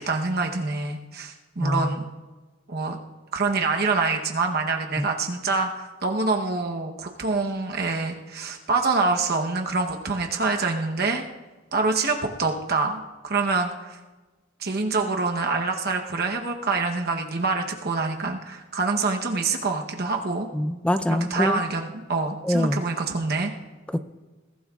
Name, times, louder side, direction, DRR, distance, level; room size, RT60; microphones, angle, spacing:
voice 1, 0.0-2.0 2.7-3.0 3.3-11.2 11.7-14.0 14.6-20.5 21.1-23.5, right 3 dB, 55° right, 2 dB, 1.0 m, -26 dB
voice 2, 1.6-1.9 5.0-5.1 20.5-21.6 22.4-22.8 23.9-24.0, equal, 5° left, 11 dB, 0.5 m, -24 dB
21.5 x 16.0 x 2.4 m, 1.2 s
head